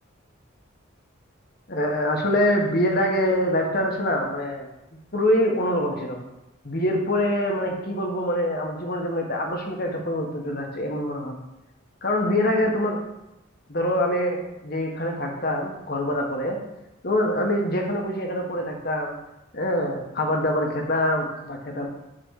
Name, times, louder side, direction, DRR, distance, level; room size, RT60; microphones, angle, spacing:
voice 1, 1.7-4.7 5.1-6.2 6.6-11.4 12.0-13.0 13.7-16.6 17.0-19.1 19.5-21.9, left 1 dB, 50° left, 1 dB, 1.5 m, -24 dB
8.8 x 4.0 x 6.4 m, 0.90 s
head